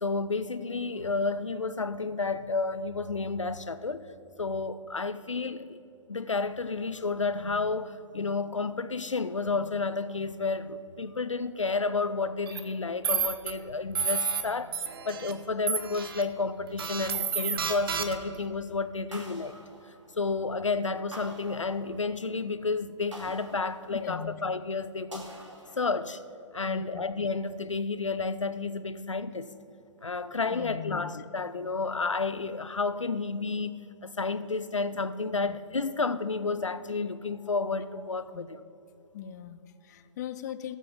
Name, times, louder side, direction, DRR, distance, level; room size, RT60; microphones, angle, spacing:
voice 1, 0.0-4.1 4.4-5.8 6.1-19.6 20.2-25.3 25.8-26.2 26.5-29.5 30.0-38.6, left 4 dB, 80° left, 0.6 m, -31 dB
sound 1, 12.5-12.6 13.0-13.5 13.9-14.4 14.7-15.3 15.7-16.2 16.8-18.4, right 6 dB, 50° right, 0.9 m, -30 dB
sound 2, 19.1-20.5 21.1-22.3 23.1-24.4 25.1-26.3, right 1 dB, 75° right, 2.4 m, -47 dB
voice 2, 23.9-24.4 26.7-27.0 30.5-31.1 35.4-35.6 38.3-38.5 39.1-40.8, left 9 dB, 35° left, 0.5 m, -39 dB
17.5 x 7.4 x 3.6 m
figure-of-eight pair, 120°, 16 cm